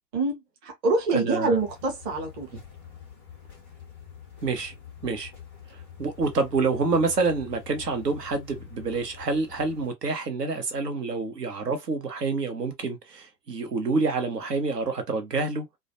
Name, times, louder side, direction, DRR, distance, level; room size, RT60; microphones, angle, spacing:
voice 1, 0.1-2.5, right 3 dB, 20° right, 0.7 m, -26 dB
voice 2, 1.1-1.6 2.5-2.6 4.4-4.7 5.0-5.3 5.7-15.7, right 3 dB, 75° right, 0.9 m, -27 dB
sound 1, 1.5-9.9, left 8 dB, 10° left, 0.3 m, -46 dB
2.4 x 2.1 x 2.7 m
figure-of-eight pair, 105°, 49 cm